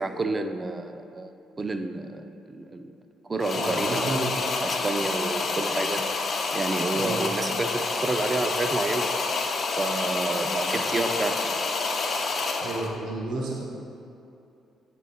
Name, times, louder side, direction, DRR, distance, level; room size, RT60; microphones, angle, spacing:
voice 1, 0.0-1.3 1.6-2.9 3.3-4.0 4.6-6.0 6.5-9.1 9.8-11.4, right 2 dB, 30° right, 8 dB, 0.4 m, -29 dB
sound 1, 3.4-13.0, left 3 dB, 55° left, 0.6 m, -28 dB
voice 2, 3.6-4.3 7.0-7.2 12.6-13.6, right 2 dB, 70° right, -3 dB, 0.8 m, -31 dB
7.6 x 3.8 x 4.1 m, 2.7 s
hypercardioid pair, 50°, 0 cm